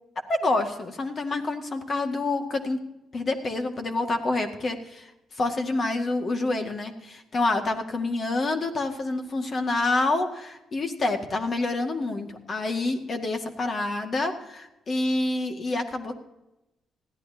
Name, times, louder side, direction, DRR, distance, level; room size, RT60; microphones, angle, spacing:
voice 1, 0.3-2.8 3.1-5.1 5.4-16.2, left 2 dB, 40° left, 5 dB, 1.9 m, -27 dB
20.5 x 14.5 x 2.8 m, 0.93 s
cardioid pair, 90°, 0 cm